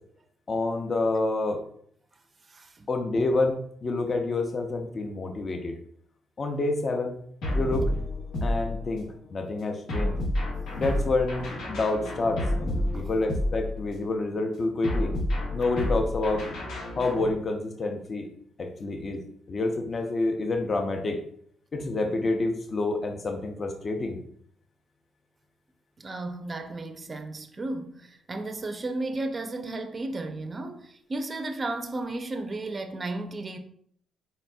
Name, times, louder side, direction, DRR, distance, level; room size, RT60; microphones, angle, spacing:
voice 1, 0.5-1.6 2.9-5.8 6.4-7.2 7.5-7.8 8.4-10.2 10.7-12.4 12.9-15.1 15.5-16.4 16.9-18.3 18.6-19.2 19.5-21.2 21.7-24.2, left 2 dB, 40° left, 0.6 m, -28 dB
voice 2, 2.5-2.9 12.9-13.1 26.0-33.6, right 2 dB, 30° right, 0.4 m, -34 dB
sound 1, 7.4-9.1 9.9-14.1 14.8-17.3, left 1 dB, 80° left, 1.4 m, -30 dB
4.0 x 4.0 x 2.3 m
cardioid pair, 90°, 0 cm